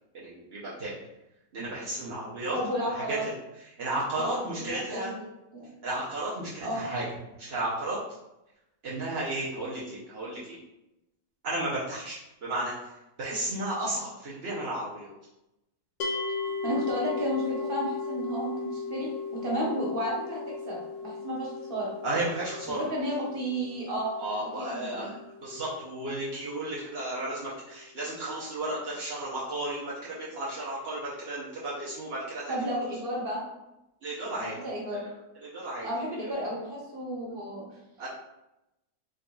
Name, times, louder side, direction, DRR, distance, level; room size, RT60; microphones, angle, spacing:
voice 1, 0.1-0.9 1.5-2.6 2.9-3.2 3.7-5.1 5.8-7.0 7.4-8.0 8.8-10.6 11.4-12.9 13.2-15.1 22.0-22.8 24.2-25.1 25.4-32.5 34.0-35.1 35.4-35.9 38.0-38.1, right 1 dB, 55° right, -8 dB, 0.7 m, -33 dB
voice 2, 2.5-3.2 4.2-5.2 5.5-5.7 6.6-6.8 16.6-21.9 22.7-24.1 24.4-25.1 32.5-33.4 34.4-35.0 35.8-37.6, equal, 35° right, -5 dB, 1.2 m, -32 dB
sound 1, 16.0-27.2, left 4 dB, 70° left, 1.0 m, -37 dB
3.9 x 3.8 x 2.3 m, 0.92 s
omnidirectional pair, 1.9 m